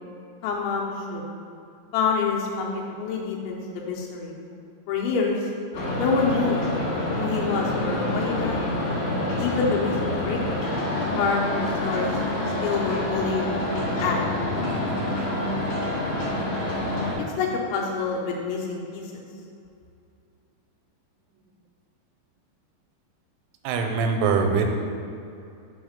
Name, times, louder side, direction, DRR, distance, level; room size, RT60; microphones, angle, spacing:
voice 1, 0.4-1.2 1.9-4.4 4.9-5.5 6.0-6.7 7.2-8.7 9.4-10.8 11.2-12.1 12.6-13.5 14.0-14.3 17.4-19.1, left 5 dB, 80° left, -1 dB, 3.0 m, -27 dB
sound 1, 5.7-17.1, left 1 dB, 65° left, 2.2 m, -27 dB
voice 2, 23.6-24.7, right 5 dB, 90° right, 4 dB, 3.1 m, -22 dB
6.3 x 3.9 x 5.0 m, 2.5 s
omnidirectional pair, 5.3 m